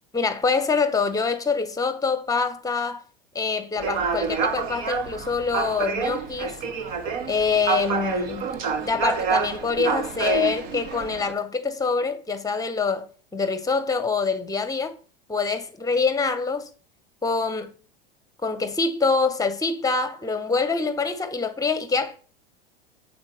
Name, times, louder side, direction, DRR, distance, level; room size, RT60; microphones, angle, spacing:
voice 1, 0.1-3.0 3.3-6.6 7.3-8.5 8.8-15.0 15.3-16.7 17.2-17.7 18.4-22.1, left 4 dB, 10° left, 1.3 m, -25 dB
sound 1, 3.8-11.3, right 5 dB, 50° right, 1.6 m, -28 dB
7.9 x 5.1 x 6.7 m
figure-of-eight pair, 85°, 31 cm